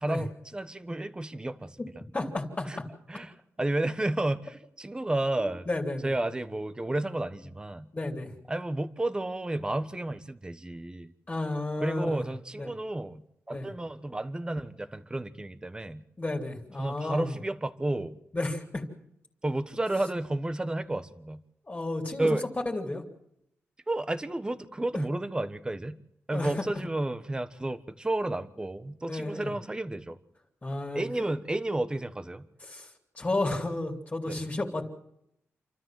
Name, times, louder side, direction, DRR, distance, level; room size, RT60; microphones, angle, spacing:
voice 1, 0.0-1.8 2.6-2.8 3.1-5.7 6.0-7.9 8.5-11.1 11.8-16.0 16.8-18.2 19.4-21.4 22.2-22.5 23.9-26.0 26.3-30.2 30.9-32.4 34.3-34.4, right 2 dB, 15° right, 11 dB, 1.2 m, -32 dB
voice 2, 2.1-2.9 5.4-6.1 7.9-8.3 11.3-12.3 12.5-12.7 13.5-13.7 16.2-17.3 18.3-18.8 21.7-22.4 22.6-23.0 26.3-26.7 29.1-29.5 30.6-31.1 32.6-32.9 33.2-34.8, left 2 dB, 25° left, 1 dB, 3.1 m, -32 dB
28.0 x 13.0 x 7.6 m, 0.79 s
cardioid pair, 100°, 5 cm